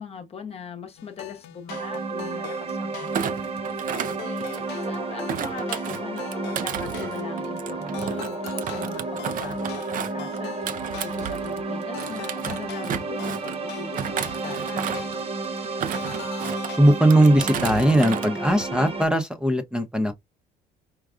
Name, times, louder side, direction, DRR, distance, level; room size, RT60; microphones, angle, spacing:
voice 1, 0.0-3.5 4.2-10.6 11.0-14.8, left 6 dB, 35° left, 0.9 m, -40 dB
sound 1, 1.0-16.8, left 12 dB, 90° left, 0.5 m, -43 dB
sound 2, 1.7-19.1, right 3 dB, 35° right, 1.0 m, -32 dB
Thump thud, 3.1-4.8 5.3-11.6 12.0-13.6 14.0-15.2 15.6-16.7 17.1-18.3 18.6-18.9, right 9 dB, 55° right, 0.5 m, -33 dB
voice 2, 16.8-20.1, right 1 dB, 5° right, 0.7 m, -19 dB
4.9 x 2.3 x 2.4 m
cardioid pair, 110°, 17 cm